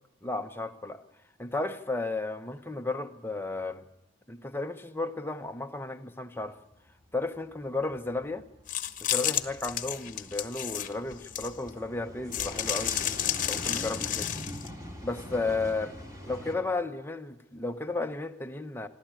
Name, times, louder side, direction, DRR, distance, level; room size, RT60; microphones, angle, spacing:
voice 1, 0.2-1.1 1.4-3.8 4.3-6.6 7.1-8.4 9.0-13.0 13.5-14.4 15.0-15.9 16.2-18.9, left 2 dB, 10° left, 0.9 m, -33 dB
sound 1, 6.6-7.0 7.4-16.6, left 1 dB, 15° right, 3.0 m, -43 dB
sound 2, 8.7-11.7 12.3-14.7, left 11 dB, 40° left, 1.2 m, -31 dB
27.0 x 12.5 x 9.0 m
head